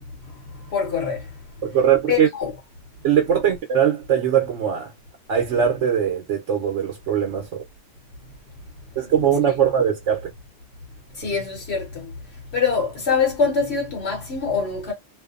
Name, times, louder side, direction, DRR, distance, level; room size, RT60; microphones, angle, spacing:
voice 1, 0.7-1.2 2.1-2.5 9.5-9.6 11.2-12.1 12.5-14.9, left 5 dB, 65° left, 1.0 m, -24 dB
voice 2, 1.6-2.3 3.0-4.9 5.3-7.5 9.0-10.3, right 8 dB, 80° right, 1.0 m, -20 dB
2.6 x 2.1 x 2.4 m
omnidirectional pair, 1.2 m